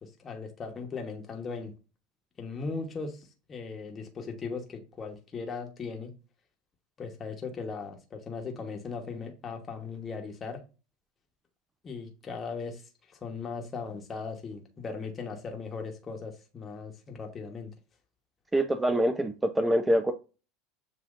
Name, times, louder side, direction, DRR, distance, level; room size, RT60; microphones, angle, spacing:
voice 1, 0.0-1.7 2.4-6.1 7.0-10.6 11.8-12.8 13.1-17.7, left 4 dB, 30° left, 1.2 m, -38 dB
voice 2, 18.5-20.1, right 1 dB, 10° right, 0.6 m, -25 dB
7.2 x 2.7 x 2.4 m
hypercardioid pair, 95°, 0 cm